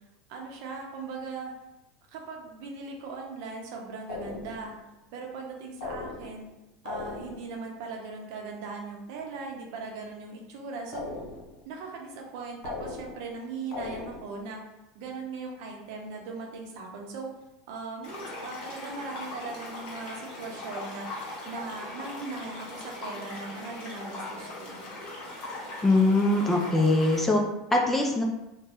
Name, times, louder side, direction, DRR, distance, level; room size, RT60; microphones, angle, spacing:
voice 1, 0.3-1.5 2.1-4.7 5.1-6.5 6.8-11.1 11.6-14.6 14.9-17.3 17.7-21.1 21.4-24.8, right 4 dB, 65° right, 1 dB, 0.7 m, -39 dB
sound 1, 4.1-4.8 5.8-6.5 6.9-7.6 10.9-11.7 12.6-13.4 13.7-14.4, left 3 dB, 70° left, 0.8 m, -38 dB
sound 2, 18.0-27.2, left 2 dB, 45° left, 1.0 m, -40 dB
voice 2, 25.8-27.4 27.7-28.2, left 2 dB, 10° left, 1 dB, 0.4 m, -22 dB
2.6 x 2.2 x 3.3 m, 0.95 s
supercardioid pair, 130°, 2 cm